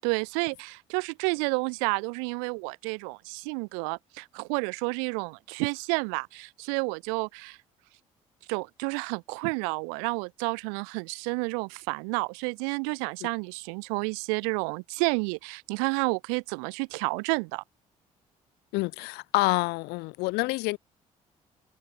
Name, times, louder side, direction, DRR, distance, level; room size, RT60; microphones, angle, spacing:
voice 1, 0.0-7.6 8.5-17.6, right 40 dB or more, 70° right, 1.3 m, -30 dB
voice 2, 18.7-20.8, left 24 dB, 65° left, 1.1 m, -27 dB
figure-of-eight pair, 45°, 18 cm